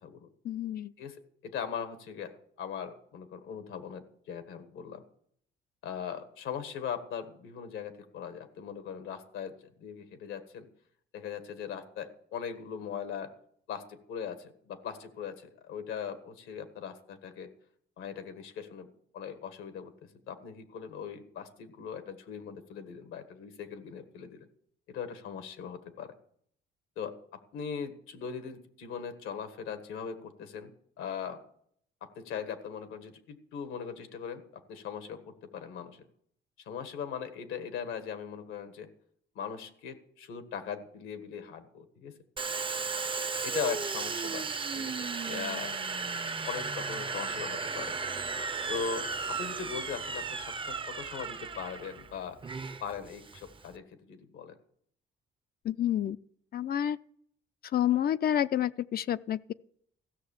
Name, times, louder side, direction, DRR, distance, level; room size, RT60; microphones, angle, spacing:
voice 1, 0.4-0.9 55.6-56.2 56.5-57.0 57.7-59.5, left 11 dB, 50° left, 0.4 m, -29 dB
voice 2, 1.0-5.0 5.8-10.7 11.1-13.3 13.7-17.5 18.0-18.9 19.1-19.9 20.3-24.5 24.9-26.1 26.9-30.7 31.0-31.4 32.0-36.0 36.6-38.9 39.3-42.1 43.4-44.5 44.7-45.8 46.5-48.0 48.7-52.4 52.8-54.6, left 7 dB, 90° left, 1.5 m, -40 dB
Domestic sounds home sounds, 42.4-53.7, right 4 dB, 25° right, 0.6 m, -35 dB
15.0 x 6.4 x 7.1 m
cardioid pair, 90°, 20 cm